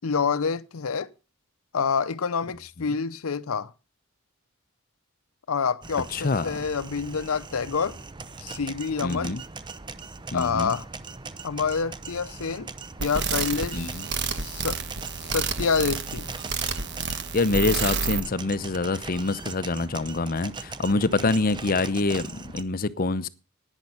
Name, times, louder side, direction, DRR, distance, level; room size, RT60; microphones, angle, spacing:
voice 1, 0.0-1.1 1.7-3.7 5.5-8.0 8.4-9.4 10.3-10.9 11.4-12.7 13.0-14.0 14.3-14.8 15.3-16.3, left 5 dB, 80° left, 0.6 m, -27 dB
sound 1, 5.8-22.6, right 4 dB, 20° right, 0.6 m, -40 dB
voice 2, 6.1-6.6 9.0-9.4 10.3-10.7 13.7-14.1 17.1-23.3, left 3 dB, 40° left, 0.7 m, -26 dB
sound 2, 13.0-18.2, right 5 dB, 55° right, 1.2 m, -30 dB
10.5 x 9.9 x 5.5 m
head